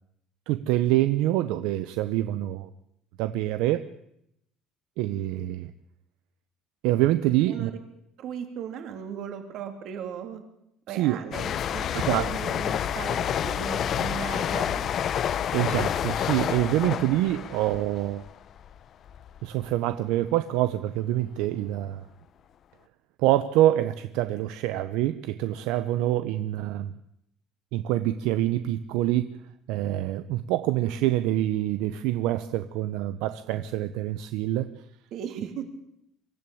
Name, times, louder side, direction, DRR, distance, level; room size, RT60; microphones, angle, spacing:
voice 1, 0.5-2.7 3.2-3.8 5.0-5.7 6.8-7.7 10.9-11.2 12.1-12.3 15.5-18.2 19.4-22.0 23.2-26.9 27.7-29.4 29.7-34.7, right 14 dB, 70° right, 12 dB, 0.9 m, -26 dB
voice 2, 7.4-7.7 8.2-10.4 10.9-14.9 35.1-35.6, right 8 dB, 45° right, 6 dB, 3.2 m, -37 dB
sound 1, 11.3-18.8 19.1-19.4, left 9 dB, 35° left, 0.7 m, -29 dB
24.0 x 14.0 x 8.7 m, 0.78 s
cardioid pair, 170°, 0 cm